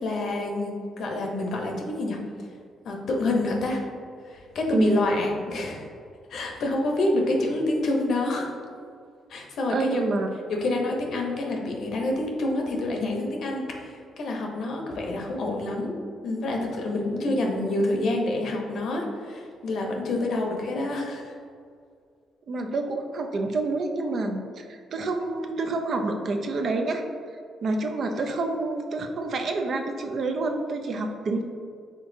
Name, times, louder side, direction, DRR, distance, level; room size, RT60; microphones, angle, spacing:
voice 1, 0.0-2.2 2.8-3.8 4.2-5.9 6.3-8.5 9.3-10.0 10.5-16.0 16.2-21.3, left 2 dB, 65° left, 1 dB, 0.8 m, -27 dB
voice 2, 9.7-10.3 22.5-27.0 27.6-31.4, right 2 dB, 55° right, 4 dB, 0.5 m, -27 dB
5.2 x 3.6 x 2.6 m, 2.2 s
cardioid pair, 90°, 0 cm